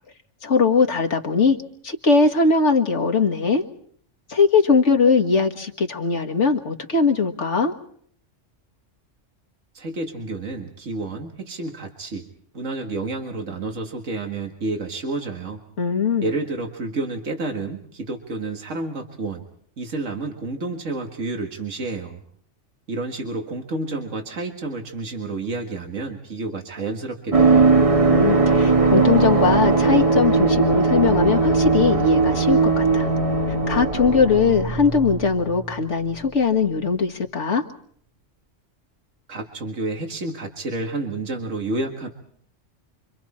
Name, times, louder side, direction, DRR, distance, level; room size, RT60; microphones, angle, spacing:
voice 1, 0.4-1.6 1.8-3.6 4.3-7.7 15.8-16.3 28.1-33.1 33.7-37.6, left 4 dB, 65° left, 4 dB, 2.0 m, -20 dB
voice 2, 9.7-12.3 12.5-15.6 16.2-19.4 19.8-22.2 22.9-27.7 39.3-42.1, right 3 dB, 80° right, 2 dB, 2.2 m, -30 dB
sound 1, 27.3-35.8 36.1-36.2, right 4 dB, 30° right, 1.3 m, -19 dB
29.0 x 24.5 x 4.3 m, 0.62 s
omnidirectional pair, 1.3 m